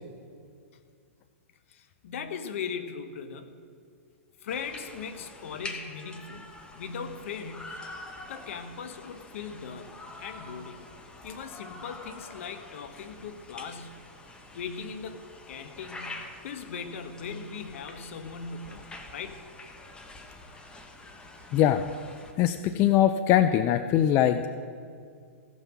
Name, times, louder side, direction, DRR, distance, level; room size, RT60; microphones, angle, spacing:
voice 1, 1.7-3.6 4.4-7.8 8.3-10.9 11.2-14.0 14.5-19.4, left 6 dB, 65° left, 10 dB, 1.0 m, -39 dB
sound 1, 4.5-22.3, left 2 dB, 10° left, 1.0 m, -46 dB
voice 2, 21.5-21.8 22.4-24.5, left 11 dB, 30° left, 10 dB, 0.4 m, -22 dB
15.5 x 5.5 x 6.0 m, 2.2 s
hypercardioid pair, 130°, 8 cm